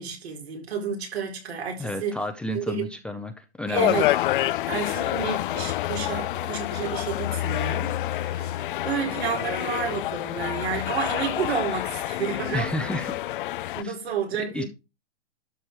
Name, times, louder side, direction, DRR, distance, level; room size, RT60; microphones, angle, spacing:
voice 1, 0.0-2.2 2.5-3.0 3.7-4.1 4.7-12.9 13.7-14.7, right 6 dB, 70° right, 4.5 m, -31 dB
voice 2, 1.8-4.1 12.5-13.1 13.8-13.9 14.3-14.6, left 1 dB, 5° left, 0.6 m, -31 dB
sound 1, 3.7-13.8, left 14 dB, 50° left, 0.5 m, -28 dB
12.5 x 5.1 x 4.6 m
hypercardioid pair, 135°, 33 cm